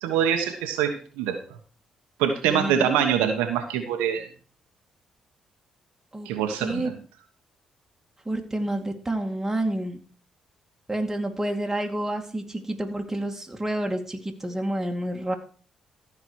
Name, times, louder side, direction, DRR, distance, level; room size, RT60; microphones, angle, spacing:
voice 1, 0.0-1.4 2.2-4.3 6.2-6.9, right 8 dB, 85° right, 5 dB, 1.2 m, -24 dB
voice 2, 2.4-3.0 6.1-6.3 6.6-6.9 8.3-10.0 10.9-15.4, right 1 dB, 15° right, 3 dB, 2.4 m, -29 dB
14.5 x 4.9 x 4.7 m, 0.41 s
supercardioid pair, 55°, 2 cm